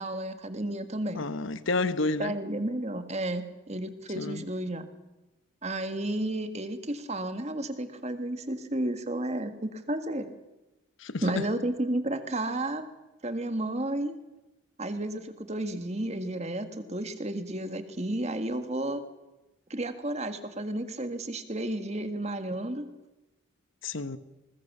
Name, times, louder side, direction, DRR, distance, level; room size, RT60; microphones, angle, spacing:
voice 1, 0.0-1.3 2.2-4.9 5.6-10.3 11.2-12.9 13.2-14.1 14.8-19.0 19.7-22.9, right 1 dB, 35° right, 1.7 m, -32 dB
voice 2, 1.1-2.3 4.1-4.4 11.0-11.4 23.8-24.2, left 3 dB, 70° left, 1.1 m, -30 dB
20.5 x 20.0 x 7.3 m
head